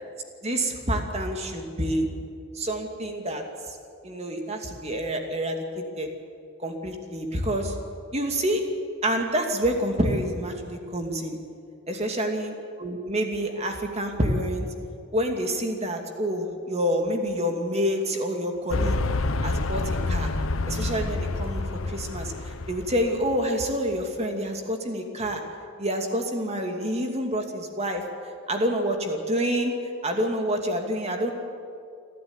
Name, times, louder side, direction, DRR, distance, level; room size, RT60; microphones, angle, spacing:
voice 1, 0.4-2.1 2.5-3.4 4.0-6.1 6.6-7.8 8.1-8.6 9.0-11.4 11.9-14.7 15.1-19.0 19.4-20.3 20.7-25.4 25.8-28.0 28.5-29.7 30.0-31.3, equal, 30° right, 3 dB, 2.6 m, -27 dB
sound 1, 18.7-23.5, left 2 dB, 85° left, 1.0 m, -28 dB
29.0 x 12.0 x 9.9 m, 2.4 s
head